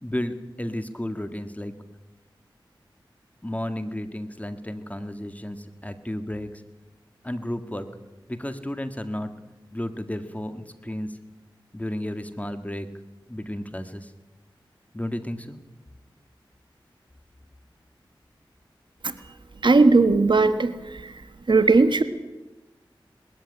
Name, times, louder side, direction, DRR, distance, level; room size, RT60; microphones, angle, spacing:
voice 1, 0.0-1.7 3.4-6.5 7.2-7.9 8.3-9.3 9.7-11.1 11.7-12.9 13.3-14.1 14.9-15.6, left 1 dB, 15° left, 9 dB, 1.9 m, -32 dB
voice 2, 19.6-21.2 21.5-22.0, right 3 dB, 60° right, 10 dB, 1.4 m, -18 dB
20.0 x 13.5 x 9.8 m, 1.1 s
cardioid pair, 50°, 9 cm